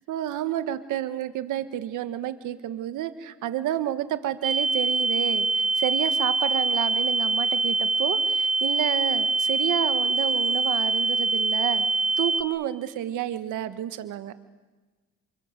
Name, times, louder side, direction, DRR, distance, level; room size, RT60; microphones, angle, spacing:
voice 1, 0.1-11.9 12.2-14.3, right 12 dB, 90° right, 10 dB, 1.6 m, -30 dB
sound 1, 4.4-12.4, right 3 dB, 50° right, 1.7 m, -24 dB
28.0 x 27.5 x 7.6 m, 1.3 s
cardioid pair, 90°, 30 cm